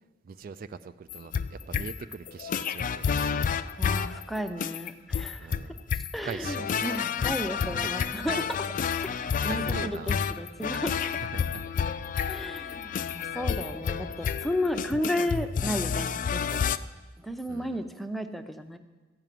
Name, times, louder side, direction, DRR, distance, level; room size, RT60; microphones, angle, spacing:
voice 1, 0.2-3.5 5.4-5.8 6.2-6.7 7.6-7.9 8.3-8.5 9.4-10.2 11.0-11.7 12.2-12.4 17.5-17.8, right 5 dB, 50° right, 12 dB, 0.3 m, -41 dB
sound 1, 1.1-16.8, left 6 dB, 45° left, 0.3 m, -30 dB
voice 2, 3.8-5.5 6.1-8.4 9.0-10.9 12.3-16.6 17.2-18.8, equal, ahead, 7 dB, 0.6 m, -33 dB
14.0 x 5.9 x 9.1 m, 1.2 s
head